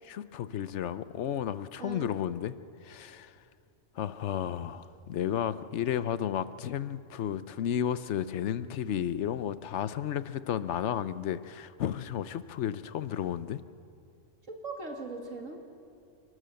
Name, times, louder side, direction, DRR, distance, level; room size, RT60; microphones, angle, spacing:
voice 1, 0.1-2.5 2.8-3.3 4.0-13.6, left 10 dB, 70° left, 14 dB, 1.0 m, -33 dB
voice 2, 1.8-2.2 14.5-15.6, right 3 dB, 80° right, 3 dB, 2.6 m, -40 dB
28.5 x 12.5 x 7.7 m, 2.4 s
omnidirectional pair, 1.3 m